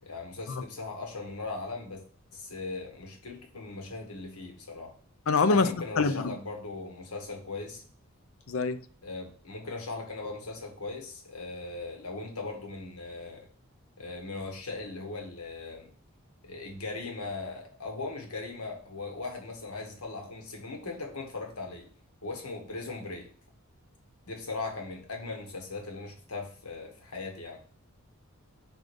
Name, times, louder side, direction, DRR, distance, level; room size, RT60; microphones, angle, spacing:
voice 1, 0.0-2.0 2.3-4.9 5.5-7.8 9.0-13.5 14.0-15.9 16.4-21.9 22.2-23.3 24.3-27.6, left 3 dB, 85° left, 1.7 m, -39 dB
voice 2, 5.3-5.7 6.0-6.3 8.5-8.8, left 4 dB, 65° left, 0.5 m, -24 dB
6.3 x 3.8 x 5.1 m
head